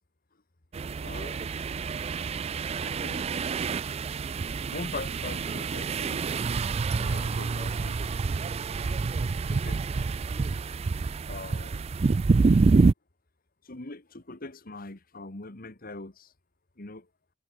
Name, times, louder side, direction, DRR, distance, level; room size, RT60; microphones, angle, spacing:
sound 1, 0.7-12.9, right 4 dB, 35° right, 0.3 m, -27 dB
voice 1, 1.0-1.4 2.8-3.3 4.7-6.2 6.9-8.5 9.1-10.2 11.3-11.9 13.6-16.3 16.8-17.1, left 2 dB, 50° left, 1.8 m, -42 dB
head